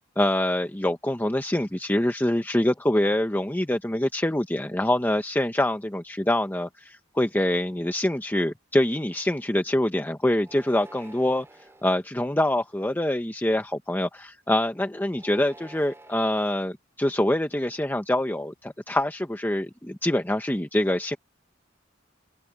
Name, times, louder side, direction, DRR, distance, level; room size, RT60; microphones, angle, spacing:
voice 1, 0.2-11.5 11.8-21.2, left 1 dB, 10° left, 0.9 m, -25 dB
sound 1, 10.4-11.9 12.6-13.1 15.1-16.6, right 2 dB, 15° right, 3.1 m, -49 dB
head